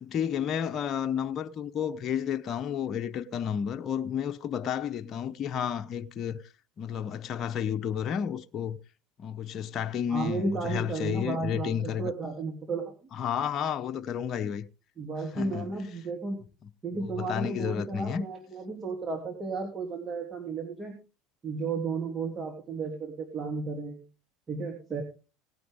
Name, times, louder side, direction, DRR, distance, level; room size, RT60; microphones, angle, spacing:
voice 1, 0.0-6.4 6.8-8.8 9.2-12.1 13.1-14.7 15.3-15.7 16.9-18.2, left 8 dB, 45° left, 0.8 m, -31 dB
voice 2, 10.1-12.9 15.0-16.4 16.8-21.0 21.4-24.1 24.5-25.0, right 4 dB, 30° right, 2.8 m, -33 dB
18.5 x 9.3 x 3.6 m
hypercardioid pair, 80°, 0 cm